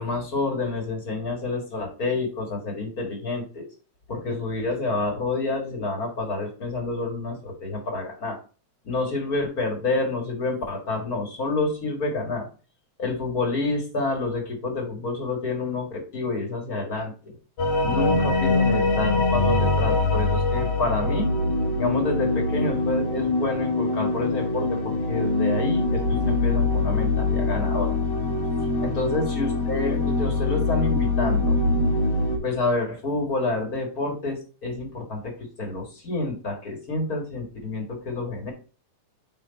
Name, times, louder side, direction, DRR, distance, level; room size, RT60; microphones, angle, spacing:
voice 1, 0.0-3.7 4.1-8.4 8.8-12.5 13.0-17.4 17.8-21.3 21.8-28.0 28.8-31.6 32.4-38.5, left 2 dB, 35° left, 1 dB, 1.8 m, -28 dB
sound 1, 17.6-32.4, left 3 dB, 80° left, 2.6 m, -23 dB
8.9 x 3.4 x 4.1 m, 0.38 s
omnidirectional pair, 3.4 m